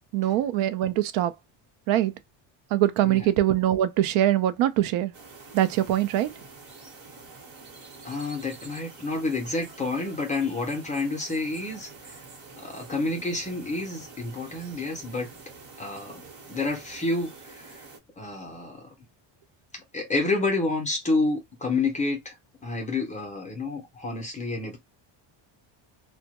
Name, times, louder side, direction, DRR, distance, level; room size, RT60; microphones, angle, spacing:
voice 1, 0.1-1.3 1.9-2.1 2.7-5.1 5.5-6.3, right 12 dB, 75° right, 0.6 m, -23 dB
sound 1, 5.1-18.0, right 4 dB, 50° right, 1.0 m, -47 dB
voice 2, 8.0-12.2 12.6-15.3 15.8-16.2 16.5-17.8 18.2-18.9 19.7-22.3 22.6-24.8, left 3 dB, 15° left, 0.5 m, -29 dB
2.2 x 2.1 x 2.8 m
cardioid pair, 175°, 48 cm